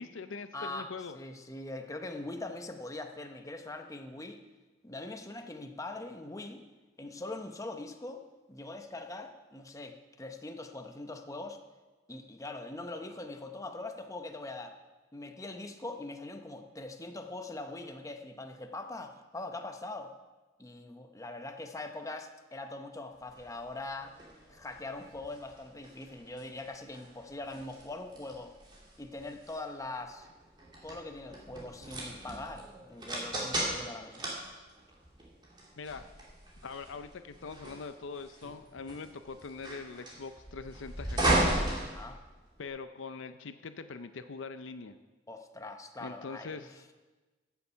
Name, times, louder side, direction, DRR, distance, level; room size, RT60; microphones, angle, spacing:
voice 1, 0.0-1.2 35.8-36.1 36.6-41.6 42.6-45.0 46.0-46.8, left 4 dB, 65° left, 10 dB, 0.6 m, -42 dB
voice 2, 0.5-4.4 4.8-6.6 7.0-8.2 8.5-11.6 12.1-14.8 15.1-20.1 20.6-24.2 24.5-28.5 29.0-30.3 30.8-34.3 42.0-42.2 45.3-46.6, left 2 dB, 15° left, 5 dB, 0.8 m, -42 dB
sound 1, 23.3-42.7, right 1 dB, 25° right, 2.7 m, -37 dB
15.0 x 7.0 x 5.6 m, 1.2 s
head